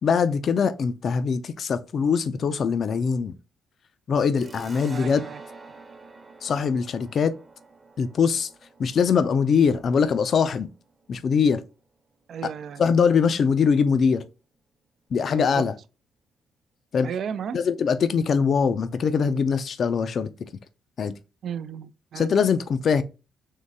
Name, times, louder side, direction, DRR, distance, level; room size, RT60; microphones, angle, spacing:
voice 1, 0.0-3.3 4.1-5.2 6.4-7.3 8.0-8.5 8.8-10.7 11.1-11.6 12.4-12.5 12.8-14.2 15.1-15.7 16.9-17.1 17.5-20.3 21.0-21.1 22.1-23.0, left 6 dB, 55° left, 0.4 m, -22 dB
sound 1, 4.3-11.5, right 3 dB, 25° right, 0.9 m, -47 dB
voice 2, 4.9-5.4 12.3-12.8 15.3-15.7 17.0-17.6 21.4-22.3, right 7 dB, 60° right, 0.4 m, -34 dB
3.7 x 3.1 x 4.0 m
cardioid pair, 90°, 0 cm